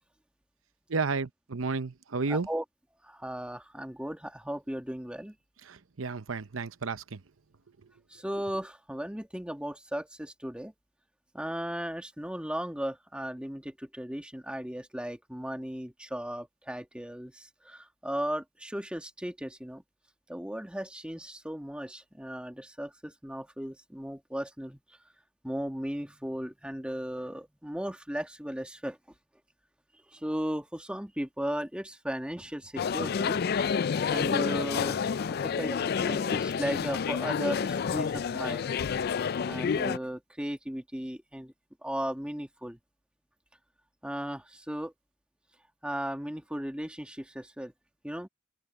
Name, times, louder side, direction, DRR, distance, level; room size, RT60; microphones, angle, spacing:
voice 1, 0.9-2.5 5.7-7.2, right 4 dB, 75° right, 0.8 m, -32 dB
voice 2, 2.3-2.6 3.0-5.3 8.1-10.7 11.3-19.8 20.3-24.8 25.4-29.0 30.1-33.4 34.1-38.7 39.5-41.5 41.8-42.8 44.0-44.9 45.8-47.7 48.0-48.3, equal, 5° right, 1.4 m, -36 dB
sound 1, 32.8-40.0, left 6 dB, 50° left, 0.3 m, -29 dB
open air
head